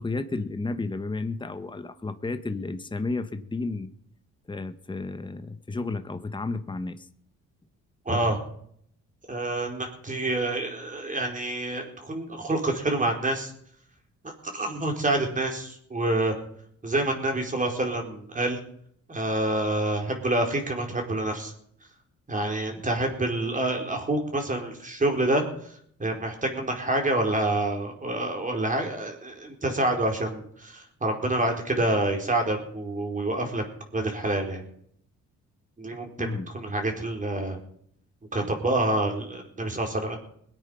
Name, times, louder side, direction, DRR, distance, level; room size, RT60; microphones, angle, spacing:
voice 1, 0.0-3.9 4.5-7.1 36.2-36.5, left 3 dB, 15° left, 10 dB, 1.2 m, -32 dB
voice 2, 8.0-8.4 9.3-13.5 14.2-16.4 16.8-18.6 19.1-21.5 22.3-33.6 33.9-34.6 35.8-37.6 38.3-40.2, right 2 dB, 25° right, 2 dB, 4.3 m, -27 dB
21.5 x 8.9 x 5.6 m, 0.66 s
cardioid pair, 90°, 30 cm